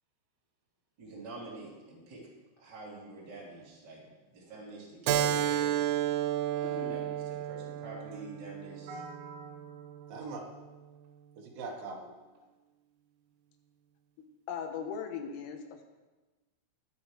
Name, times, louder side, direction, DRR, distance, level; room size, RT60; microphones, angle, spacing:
voice 1, 1.0-2.3 2.6-5.8 6.5-9.0, right 3 dB, 25° right, -6 dB, 2.9 m, -46 dB
Keyboard (musical), 5.1-10.2, right 11 dB, 85° right, 3.5 m, -32 dB
voice 2, 6.6-7.0 14.5-15.8, left 6 dB, 85° left, 5 dB, 3.6 m, -38 dB
voice 3, 8.9-10.4 11.4-12.1, right 3 dB, 65° right, -1 dB, 2.2 m, -43 dB
21.5 x 8.5 x 3.3 m, 1.2 s
omnidirectional pair, 6.0 m